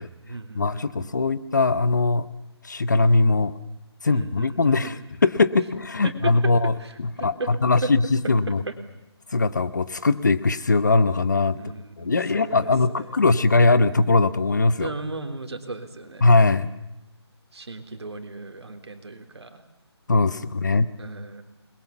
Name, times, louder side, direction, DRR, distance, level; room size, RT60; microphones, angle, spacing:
voice 1, 0.0-1.2 4.1-5.1 6.0-6.3 6.8-7.5 7.8-7.9 8.5-8.8 11.5-13.2 14.8-16.3 17.5-19.6 21.0-21.4, right 3 dB, 70° right, 5 dB, 3.4 m, -36 dB
voice 2, 0.5-2.3 2.6-3.5 4.0-6.7 7.0-8.6 9.3-11.6 12.0-14.9 16.2-16.7 20.1-20.9, left 3 dB, 40° left, 14 dB, 0.9 m, -20 dB
27.5 x 21.0 x 7.2 m, 0.92 s
hypercardioid pair, 180°, 15 cm